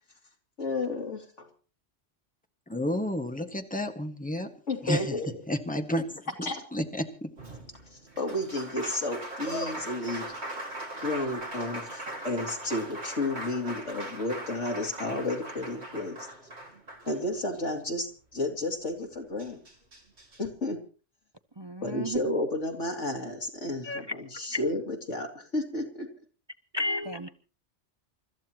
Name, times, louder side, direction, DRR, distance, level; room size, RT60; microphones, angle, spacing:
voice 1, 0.6-1.5 4.7-5.4 6.4-6.6 8.2-10.4 11.0-16.3 17.0-19.6 20.4-20.8 21.8-24.0 24.4-26.1, left 2 dB, 85° left, 2 dB, 3.1 m, -32 dB
voice 2, 2.7-4.5 4.8-5.1 5.5-6.0 6.7-7.3, left 1 dB, 5° left, 5 dB, 1.7 m, -30 dB
Applause, 7.4-17.6 19.0-19.1 19.4-20.4, right 1 dB, 65° right, 2.6 m, -40 dB
voice 3, 21.6-22.2 23.8-24.7 26.7-27.3, left 1 dB, 25° right, 8 dB, 0.7 m, -33 dB
29.0 x 14.0 x 3.0 m, 0.37 s
omnidirectional pair, 1.2 m